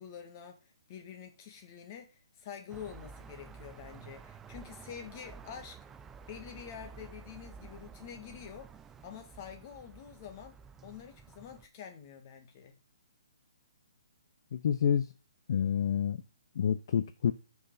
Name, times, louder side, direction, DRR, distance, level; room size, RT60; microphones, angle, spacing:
voice 1, 0.0-5.8 6.3-8.7 9.0-12.7, left 8 dB, 35° left, 2.1 m, -47 dB
sound 1, 2.7-11.7, right 5 dB, 10° right, 0.4 m, -51 dB
voice 2, 14.5-15.1 15.5-16.2 16.5-17.3, left 8 dB, 55° left, 0.6 m, -28 dB
13.0 x 5.8 x 4.1 m
hypercardioid pair, 150°, 3 cm